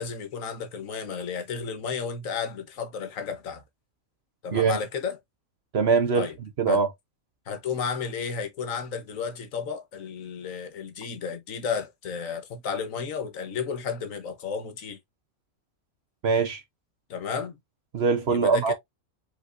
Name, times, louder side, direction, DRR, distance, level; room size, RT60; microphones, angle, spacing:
voice 1, 0.0-3.6 4.4-5.2 6.1-6.4 6.7-6.8 7.5-15.0 17.1-17.6 18.3-18.7, left 6 dB, 65° left, 1.3 m, -33 dB
voice 2, 5.7-6.3 6.6-6.9 16.2-16.6 17.9-18.7, right 5 dB, 55° right, 0.9 m, -22 dB
5.3 x 3.7 x 2.4 m
omnidirectional pair, 1.5 m